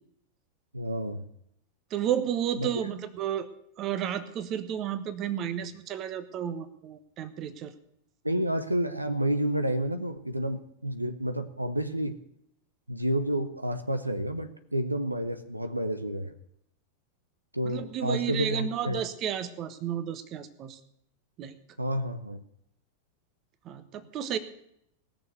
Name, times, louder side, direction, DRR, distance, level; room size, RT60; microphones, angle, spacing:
voice 1, 0.7-1.2 2.6-2.7 8.2-12.2 12.9-16.3 17.5-19.0 21.8-22.4, right 1 dB, 85° right, 9 dB, 0.9 m, -30 dB
voice 2, 1.9-3.5 3.8-7.7 17.6-20.8 21.4-21.5 23.6-24.4, right 9 dB, 35° right, 13 dB, 1.2 m, -32 dB
18.5 x 6.9 x 7.9 m, 0.75 s
figure-of-eight pair, 90°, 0 cm